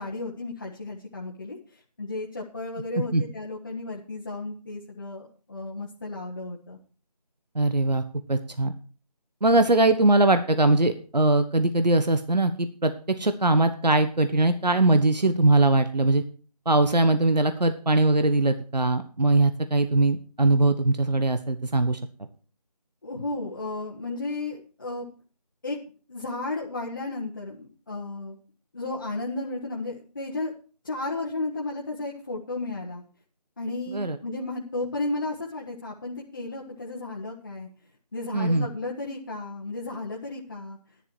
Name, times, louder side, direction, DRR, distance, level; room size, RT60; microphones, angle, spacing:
voice 1, 0.0-6.8 23.0-25.1 25.6-25.8 26.1-28.4 28.7-30.5 30.8-33.0 33.6-37.7 38.1-40.8, left 2 dB, 30° left, -3 dB, 1.3 m, -33 dB
voice 2, 7.5-8.0 8.3-8.7 9.4-12.9 13.2-16.2 16.6-22.0 33.9-34.2 38.3-38.7, right 2 dB, 80° right, 9 dB, 1.3 m, -21 dB
11.0 x 10.5 x 4.5 m, 0.38 s
figure-of-eight pair, 165°, 21 cm